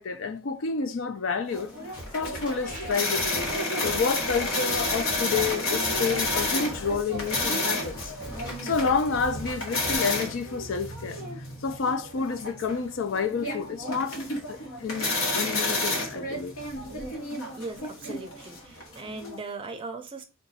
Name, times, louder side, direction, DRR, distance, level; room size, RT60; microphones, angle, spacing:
voice 1, 0.0-1.7 2.1-3.3 3.8-8.1 8.6-11.2 11.6-14.2 14.5-16.5, left 5 dB, 60° left, 0.4 m, -29 dB
sound 1, 1.5-19.4, left 2 dB, 80° left, 1.1 m, -31 dB
Drum kit, 2.0-10.0, equal, 20° left, 1.8 m, -42 dB
sound 2, 2.6-3.4, right 1 dB, 40° left, 2.2 m, -45 dB
voice 2, 17.6-20.2, right 3 dB, 25° right, 0.5 m, -39 dB
3.8 x 2.2 x 4.1 m
head